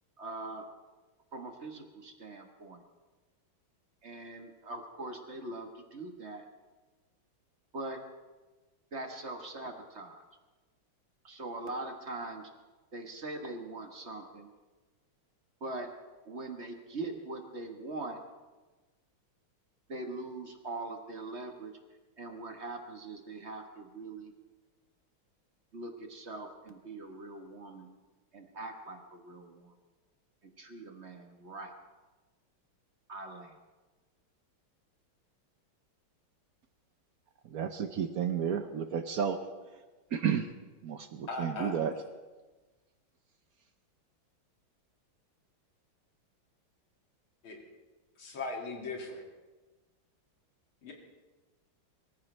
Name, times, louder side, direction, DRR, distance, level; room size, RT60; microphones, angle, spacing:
voice 1, 0.2-0.7 1.3-2.8 4.0-6.4 7.7-8.0 8.9-10.2 11.2-12.5 12.9-14.5 15.6-15.9 16.2-18.2 19.9-21.7 22.2-24.3 25.7-27.9 28.3-29.7 30.4-31.7 33.1-33.5, right 2 dB, 35° right, 4 dB, 1.5 m, -42 dB
voice 2, 37.5-39.4 40.1-40.5 40.8-41.9, right 8 dB, 60° right, 8 dB, 1.0 m, -31 dB
voice 3, 41.3-41.7 47.4-47.6 48.2-49.2 50.8-50.9, left 3 dB, 90° left, 0 dB, 3.2 m, -38 dB
23.5 x 14.5 x 3.3 m, 1.2 s
omnidirectional pair, 2.2 m